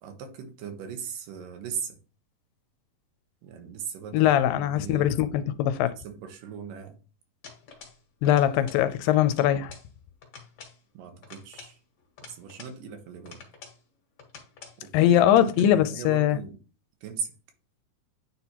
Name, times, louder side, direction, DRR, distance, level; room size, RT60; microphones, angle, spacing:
voice 1, 0.0-2.0 3.4-5.4 5.9-7.0 10.9-11.8 12.2-13.4 14.8-16.6 17.0-17.3, right 7 dB, 75° right, 2.6 m, -39 dB
voice 2, 4.1-5.9 8.2-9.7 14.9-16.4, left 11 dB, 85° left, 2.3 m, -21 dB
sound 1, 7.4-8.0 8.2-8.9 9.1-9.9 10.2-10.8 11.2-12.8 13.2-13.8 14.2-14.8 15.2-15.7, left 5 dB, 50° left, 2.2 m, -48 dB
9.3 x 4.1 x 2.9 m
omnidirectional pair, 4.0 m